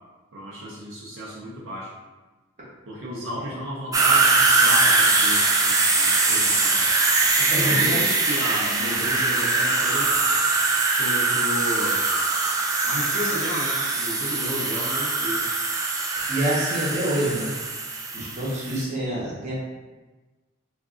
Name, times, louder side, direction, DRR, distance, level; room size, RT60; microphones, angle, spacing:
voice 1, 0.3-1.9 2.9-6.8 7.4-10.1 10.9-12.0 12.8-15.5 18.1-18.3, equal, 70° right, -6 dB, 0.7 m, -33 dB
sound 1, 3.9-18.8, right 3 dB, 15° right, 0.3 m, -22 dB
voice 2, 7.5-8.0 16.3-17.5 18.1-19.5, right 1 dB, 35° right, -7 dB, 0.9 m, -26 dB
2.6 x 2.4 x 3.7 m, 1.2 s
head